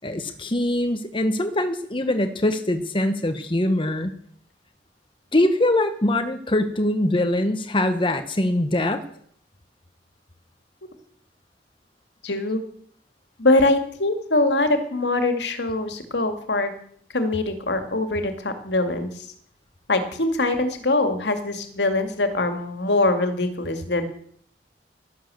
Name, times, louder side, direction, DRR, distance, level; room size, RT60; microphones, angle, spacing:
voice 1, 0.0-4.1 5.3-9.0, left 1 dB, 30° left, 8 dB, 1.2 m, -23 dB
voice 2, 12.2-12.6 13.4-16.7 17.1-19.3 19.9-24.0, left 2 dB, 75° left, 7 dB, 2.2 m, -23 dB
13.0 x 11.0 x 7.7 m, 0.64 s
head